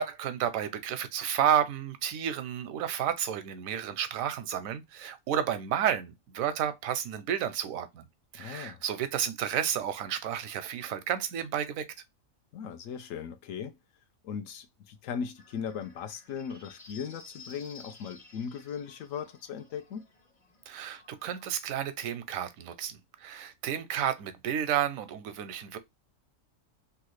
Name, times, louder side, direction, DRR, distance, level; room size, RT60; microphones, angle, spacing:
voice 1, 0.0-8.1 8.3-11.9 20.7-25.8, right 9 dB, 85° right, 1.0 m, -31 dB
voice 2, 8.4-8.8 12.5-13.8 14.2-20.1, left 7 dB, 80° left, 1.0 m, -38 dB
sound 1, 15.4-21.5, left 4 dB, 30° left, 0.8 m, -54 dB
3.1 x 2.4 x 3.0 m
omnidirectional pair, 1.4 m